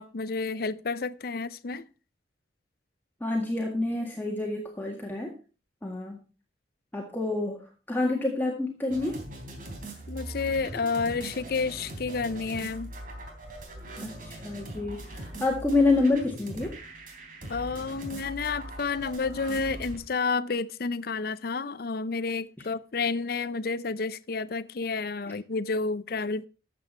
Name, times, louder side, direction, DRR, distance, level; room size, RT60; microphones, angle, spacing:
voice 1, 0.0-1.8 10.1-12.9 17.5-26.5, left 4 dB, 55° left, 0.5 m, -30 dB
voice 2, 3.2-5.3 5.8-6.2 6.9-9.2 14.0-16.7, left 2 dB, 10° left, 1.8 m, -28 dB
sound 1, 8.9-20.0, right 1 dB, 50° right, 3.5 m, -41 dB
13.5 x 7.9 x 4.4 m
head